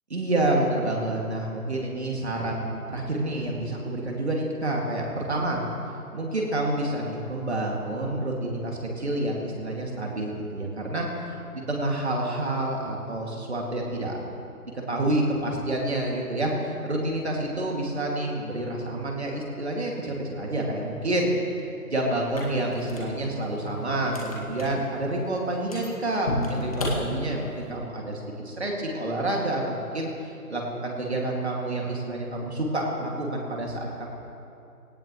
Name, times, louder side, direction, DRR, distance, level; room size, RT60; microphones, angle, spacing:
voice 1, 0.1-5.6 6.1-14.2 14.9-21.3 21.8-34.1, right 1 dB, 45° right, -1 dB, 2.3 m, -28 dB
sound 1, 22.2-27.7, left 1 dB, 25° left, 1.9 m, -34 dB
18.5 x 18.0 x 3.1 m, 2.7 s
figure-of-eight pair, 170°, 46 cm